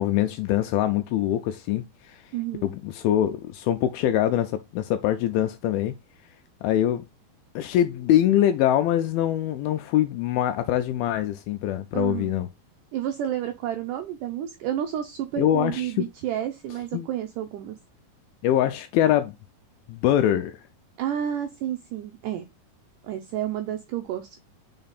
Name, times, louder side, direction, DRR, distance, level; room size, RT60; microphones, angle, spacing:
voice 1, 0.0-2.2 2.6-5.9 6.6-7.0 7.6-12.5 15.4-16.1 16.9-17.1 18.4-19.3 19.9-20.6, left 12 dB, 80° left, 2.3 m, -23 dB
voice 2, 2.3-2.7 11.9-12.3 12.9-17.8 21.0-22.5 23.0-24.4, right 10 dB, 85° right, 1.8 m, -30 dB
5.5 x 4.3 x 4.0 m
omnidirectional pair, 4.4 m